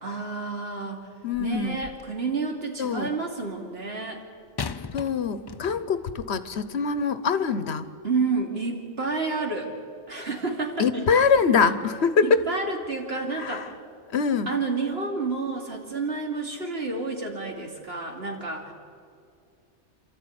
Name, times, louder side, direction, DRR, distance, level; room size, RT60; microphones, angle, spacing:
voice 1, 0.0-1.1 1.4-4.2 8.0-9.7 10.1-11.1 12.2-13.7 14.5-18.7, right 4 dB, 60° right, 1 dB, 3.0 m, -30 dB
voice 2, 1.2-1.8 2.8-3.1 4.9-7.9 10.8-12.4 13.3-13.7 14.1-14.5, left 5 dB, 70° left, 13 dB, 1.2 m, -24 dB
sound 1, 1.3-2.2 4.6-6.1 6.9-7.0, left 5 dB, 40° left, 0.3 m, -38 dB
28.5 x 13.0 x 9.5 m, 2.3 s
omnidirectional pair, 1.2 m